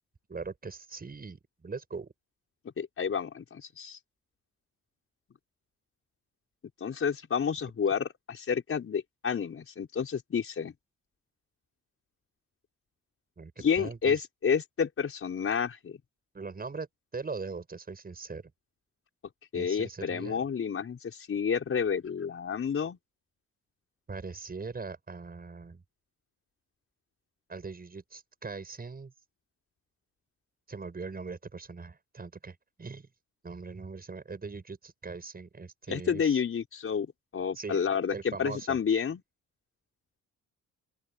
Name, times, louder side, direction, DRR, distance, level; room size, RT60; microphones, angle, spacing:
voice 1, 0.3-2.1 13.4-14.2 16.3-16.9 17.1-18.4 19.5-20.5 24.1-25.8 27.5-29.1 30.7-33.1 33.4-36.4 37.5-37.8 38.1-38.8, right 4 dB, 30° right, 7.9 m, -41 dB
voice 2, 2.8-4.0 6.8-10.7 13.6-16.0 19.5-23.0 35.9-37.1 37.3-39.2, left 6 dB, 45° left, 5.0 m, -30 dB
open air
cardioid pair, 90°, 30 cm